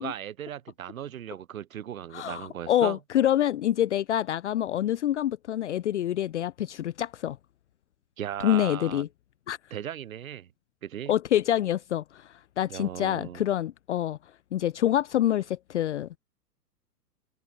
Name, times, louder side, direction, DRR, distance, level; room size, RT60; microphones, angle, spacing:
voice 1, 0.0-3.0 8.2-9.0 9.7-10.5 10.8-11.1 12.7-13.4, right 10 dB, 55° right, 3.6 m, -37 dB
voice 2, 2.1-7.4 8.4-9.1 9.5-9.6 11.1-14.2 14.5-16.1, left 11 dB, 45° left, 0.6 m, -26 dB
open air
figure-of-eight pair, 115°, 48 cm